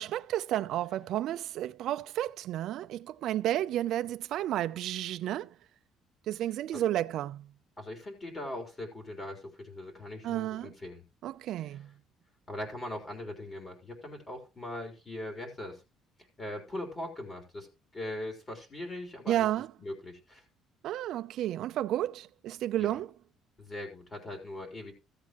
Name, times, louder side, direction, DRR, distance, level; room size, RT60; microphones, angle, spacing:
voice 1, 0.0-5.5 6.3-7.5 10.2-10.7 11.2-11.9 19.3-19.7 20.8-23.1, right 13 dB, 65° right, 0.4 m, -32 dB
voice 2, 7.8-11.0 11.6-11.9 12.5-15.8 16.4-17.7 17.9-19.5 19.8-20.4 22.8-23.0 23.6-24.9, left 1 dB, 25° left, 3.8 m, -40 dB
15.5 x 8.3 x 3.0 m
cardioid pair, 145°, 0 cm